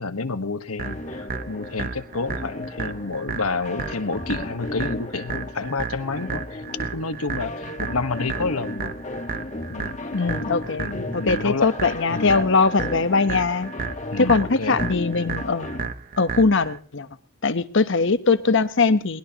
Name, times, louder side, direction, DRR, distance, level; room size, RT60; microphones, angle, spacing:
voice 1, 0.0-6.6 6.9-8.9 9.7-10.0 10.8-11.7 12.1-12.4 14.1-14.8, left 3 dB, 90° left, 9 dB, 1.3 m, -29 dB
sound 1, 0.8-15.8, left 2 dB, 35° left, 1.5 m, -35 dB
sound 2, 0.8-16.8, right 5 dB, 40° right, 0.9 m, -34 dB
voice 2, 10.1-13.7 14.2-15.9 16.2-17.1 17.4-19.2, left 4 dB, 60° left, 11 dB, 1.0 m, -21 dB
22.0 x 20.0 x 3.0 m, 0.38 s
head